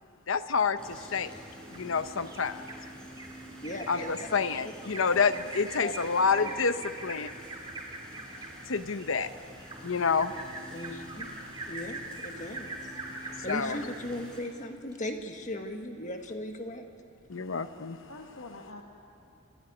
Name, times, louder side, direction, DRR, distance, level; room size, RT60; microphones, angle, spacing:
voice 1, 0.3-1.3 1.7-2.6 3.9-7.3 8.7-9.3 9.8-10.3 13.5-13.8 17.3-18.0, left 5 dB, 70° left, 12 dB, 0.8 m, -28 dB
sound 1, 0.8-14.4, equal, 5° left, 4.5 m, -48 dB
Bird vocalization bird call bird song, 1.7-2.8 3.2-3.3 3.6-14.0 14.4-14.5 14.9-15.0, right 2 dB, 20° right, 2.8 m, -42 dB
voice 2, 3.6-4.3 5.8-6.5 10.7-11.3 11.7-12.7 13.2-16.9, left 1 dB, 35° left, 5 dB, 1.6 m, -38 dB
voice 3, 17.7-18.8, left 2 dB, 90° left, 1 dB, 1.6 m, -46 dB
28.5 x 12.5 x 9.7 m, 2.6 s
head